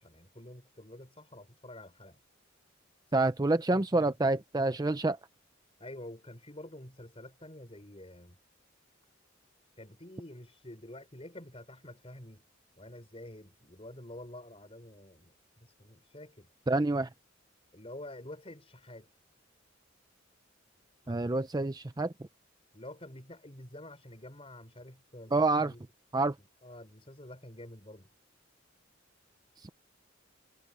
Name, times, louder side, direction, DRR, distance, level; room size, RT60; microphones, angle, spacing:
voice 1, 0.0-2.2 3.1-3.3 3.7-4.1 5.8-8.4 9.8-12.4 12.8-16.5 17.7-19.1 21.0-21.4 22.7-25.8 26.6-28.1, left 1 dB, 30° left, 5.8 m, -48 dB
voice 2, 3.1-5.2 16.7-17.1 21.1-22.1 25.3-25.7 26.1-26.3, right 2 dB, 20° right, 0.5 m, -27 dB
head